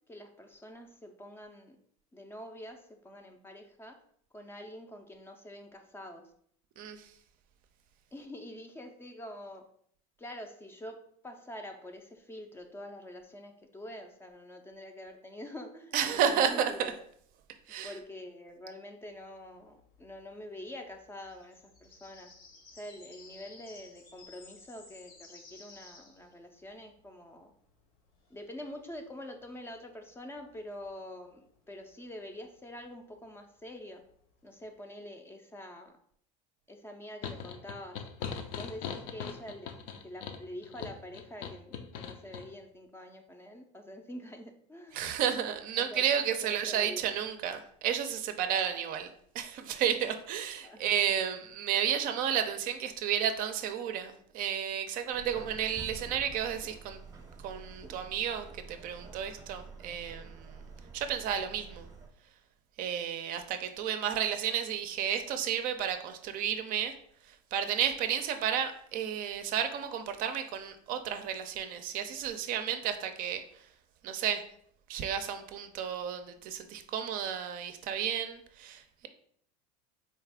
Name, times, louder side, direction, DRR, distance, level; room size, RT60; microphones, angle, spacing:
voice 1, 0.1-1.8 2.1-4.0 4.3-6.3 8.1-9.7 10.2-17.0 17.8-22.3 22.7-27.5 28.3-34.0 34.4-36.0 36.7-38.0 38.5-45.0 45.8-46.1 46.4-47.0 50.6-50.8, left 1 dB, 15° left, 5 dB, 0.4 m, -46 dB
voice 2, 6.8-7.1 15.9-16.9 17.7-17.9 44.9-57.0 57.4-60.6 60.9-61.9 62.8-67.0 67.2-73.7 74.0-74.4 74.9-79.1, right 9 dB, 50° right, 8 dB, 0.5 m, -32 dB
sound 1, 19.1-34.8, left 3 dB, 85° left, 1.1 m, -57 dB
sound 2, 37.2-42.5, left 7 dB, 70° left, 0.5 m, -40 dB
Subway metro underground, 55.1-62.1, right 4 dB, 20° right, 0.7 m, -48 dB
4.1 x 2.4 x 3.4 m, 0.64 s
supercardioid pair, 115°, 18 cm